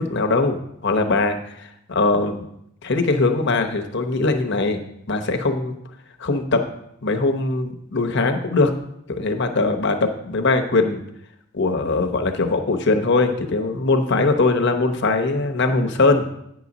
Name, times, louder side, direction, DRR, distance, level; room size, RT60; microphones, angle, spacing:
voice 1, 0.0-2.4 2.8-5.7 6.2-6.7 7.0-8.7 9.1-10.0 10.3-11.0 11.5-16.3, left 3 dB, 60° left, 5 dB, 0.9 m, -21 dB
9.1 x 4.0 x 6.1 m, 0.76 s
head